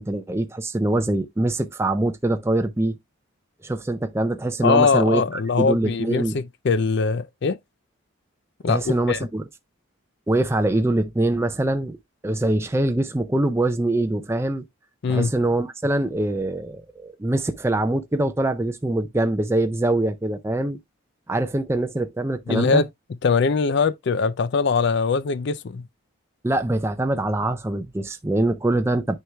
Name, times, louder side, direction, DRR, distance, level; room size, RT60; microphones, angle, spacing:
voice 1, 0.0-3.0 3.6-6.4 8.7-9.4 10.3-12.0 12.2-14.6 15.1-20.8 21.3-22.8 26.4-29.2, right 1 dB, 10° right, 0.4 m, -23 dB
voice 2, 4.6-7.6 8.6-9.3 15.0-15.3 22.5-22.9 23.2-25.9, left 5 dB, 55° left, 0.4 m, -22 dB
9.5 x 4.6 x 2.2 m
head